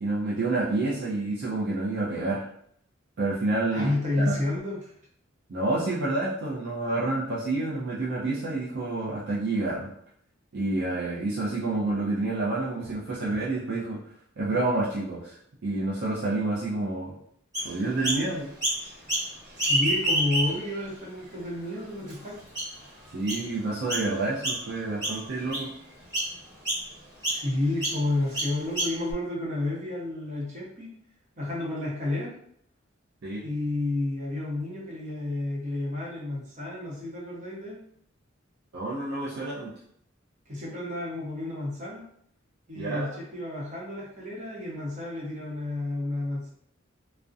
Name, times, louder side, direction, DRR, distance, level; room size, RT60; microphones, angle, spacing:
voice 1, 0.0-2.5 3.2-3.9 4.3-4.4 5.5-9.9 10.5-14.0 14.4-17.1 17.6-18.5 23.1-25.7 33.2-33.4 38.7-39.7 42.8-43.1, right 2 dB, 55° right, -6 dB, 0.4 m, -28 dB
voice 2, 3.7-4.9 19.6-22.4 27.2-30.9 31.4-32.3 33.4-37.8 40.5-42.0 42.7-46.5, left 2 dB, 40° right, -4 dB, 0.8 m, -31 dB
Chirp tweet, 17.5-18.2 18.6-19.3 19.5-20.7 21.3-21.4 22.1-22.2 22.5-22.8 23.3-23.5 23.9-24.1 24.4-24.8 25.0-25.7 26.1-26.3 26.6-26.8 27.2-27.4 27.8-28.0 28.3-29.1, right 1 dB, 20° right, 1.2 m, -28 dB
2.3 x 2.0 x 2.6 m, 0.67 s
head